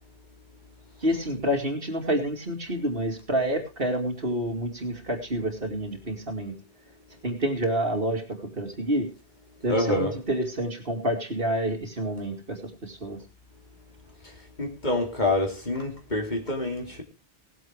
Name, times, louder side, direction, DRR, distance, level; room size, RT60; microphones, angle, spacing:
voice 1, 1.0-6.5 7.2-8.2 8.6-9.1 9.6-13.2, right 1 dB, 60° right, 2.9 m, -28 dB
voice 2, 9.6-10.2 14.2-14.3 14.6-17.0, left 2 dB, 45° left, 3.2 m, -27 dB
18.5 x 7.8 x 4.8 m
omnidirectional pair, 1.1 m